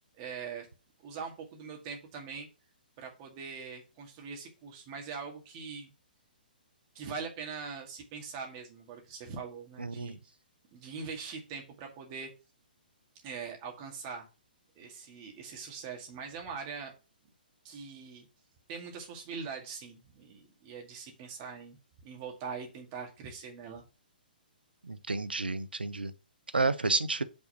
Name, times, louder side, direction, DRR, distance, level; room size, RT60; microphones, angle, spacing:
voice 1, 0.2-0.7 1.0-2.5 3.0-5.9 6.9-10.2 10.7-12.3 13.2-14.3 14.8-16.9 17.6-18.3 18.7-21.8 22.0-23.8, right 5 dB, 35° right, 2.0 m, -42 dB
voice 2, 9.8-10.2 24.8-26.1 26.5-27.2, right 3 dB, 85° right, 0.6 m, -30 dB
5.5 x 3.9 x 5.4 m
figure-of-eight pair, 125°, 5 cm